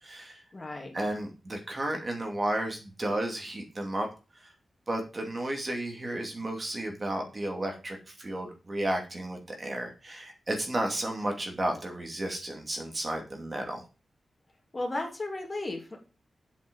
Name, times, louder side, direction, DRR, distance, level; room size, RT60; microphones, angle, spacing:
voice 1, 0.0-0.4 0.9-4.5 4.9-13.8, right 1 dB, 30° right, 2 dB, 2.5 m, -33 dB
voice 2, 0.5-0.9 14.7-16.0, left 2 dB, 30° left, 2 dB, 2.8 m, -34 dB
8.3 x 8.2 x 5.4 m, 0.31 s
wide cardioid pair, 130°, 0 cm